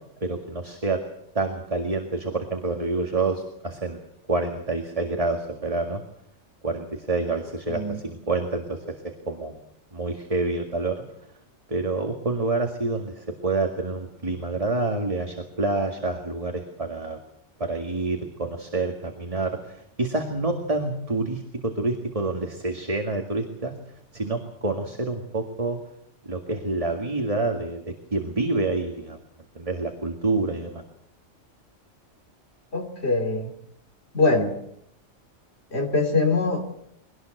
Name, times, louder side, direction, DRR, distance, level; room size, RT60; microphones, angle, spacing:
voice 1, 0.2-1.0 1.3-4.0 4.3-6.0 6.6-9.0 9.3-9.6 9.9-11.0 11.7-17.2 17.6-23.8 24.1-25.8 26.3-29.2 29.6-30.8, right 3 dB, 30° right, 4 dB, 2.1 m, -27 dB
voice 2, 7.7-8.0 32.7-33.5 34.1-34.5 35.7-36.7, left 3 dB, 60° left, 4 dB, 3.2 m, -23 dB
23.5 x 18.5 x 7.9 m, 0.74 s
omnidirectional pair, 1.3 m